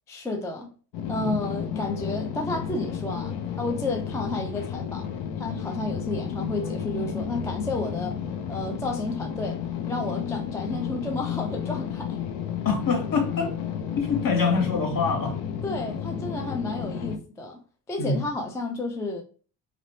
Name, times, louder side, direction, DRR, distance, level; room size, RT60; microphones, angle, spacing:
voice 1, 0.1-0.7 1.1-5.1 5.4-8.2 8.5-9.6 9.9-12.2 15.6-17.6 17.9-19.2, left 2 dB, 5° left, 0.3 m, -31 dB
sound 1, 0.9-17.2, left 8 dB, 65° left, 0.5 m, -32 dB
voice 2, 12.6-13.5 14.0-15.4 18.0-18.3, left 4 dB, 50° left, 1.0 m, -25 dB
3.0 x 2.0 x 2.7 m
cardioid pair, 85°, 44 cm